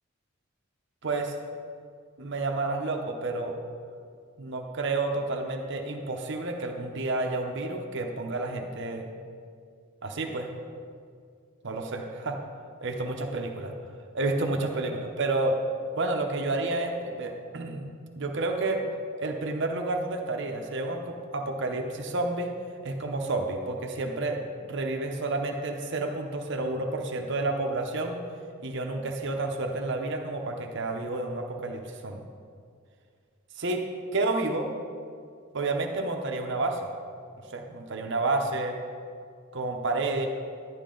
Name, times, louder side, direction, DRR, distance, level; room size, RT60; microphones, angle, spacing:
voice 1, 1.0-1.3 2.2-3.6 4.4-9.1 10.0-10.5 11.6-12.4 12.8-13.7 14.1-15.6 16.0-17.9 18.2-18.8 19.2-22.5 22.8-28.2 28.6-32.2 33.6-33.8 34.1-34.7 35.5-36.9 37.5-38.8 39.5-40.3, right 2 dB, 60° right, 3 dB, 0.8 m, -30 dB
11.0 x 10.5 x 3.8 m, 2.2 s
head